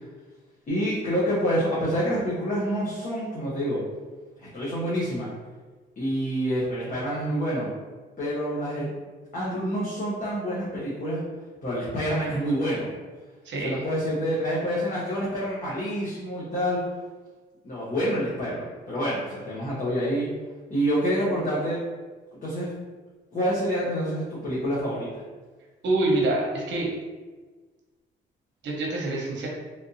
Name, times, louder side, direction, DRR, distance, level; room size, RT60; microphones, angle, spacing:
voice 1, 0.7-3.8 4.4-5.3 6.0-7.7 8.2-8.9 9.3-11.2 11.6-12.9 13.6-16.8 17.6-20.3 20.7-21.8 22.4-22.7 23.3-25.1, equal, 40° left, -8 dB, 1.0 m, -27 dB
voice 2, 13.4-13.8 25.8-26.9 28.6-29.5, right 2 dB, 65° right, -1 dB, 1.0 m, -26 dB
3.4 x 2.7 x 2.6 m, 1.3 s
cardioid pair, 90°, 20 cm